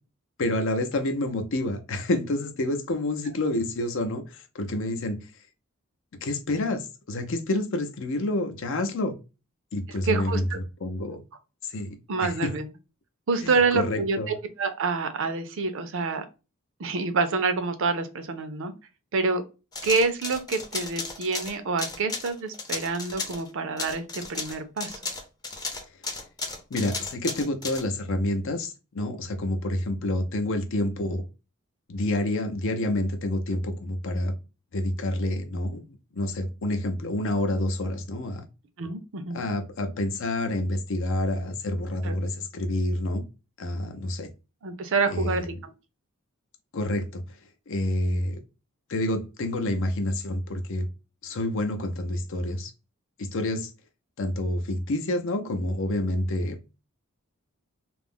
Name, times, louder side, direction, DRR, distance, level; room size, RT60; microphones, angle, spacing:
voice 1, 0.4-5.3 6.2-9.2 9.7-11.2 11.6-12.5 13.4-14.3 26.0-26.2 26.7-31.3 31.9-34.3 34.7-38.5 39.3-43.3 43.6-44.3 45.1-45.5 46.7-47.4 47.7-48.4 48.9-50.9 51.2-52.7 53.2-53.7 54.2-56.6, left 1 dB, 65° left, 0.5 m, -28 dB
voice 2, 10.0-10.6 12.1-12.7 13.3-16.2 16.8-18.7 19.1-19.4 19.8-25.0 38.8-39.4 42.0-42.1 44.6-45.7, right 4 dB, 65° right, 0.5 m, -27 dB
sound 1, 19.7-23.5 23.8-27.8, left 3 dB, 20° left, 0.6 m, -34 dB
2.4 x 2.0 x 3.4 m
head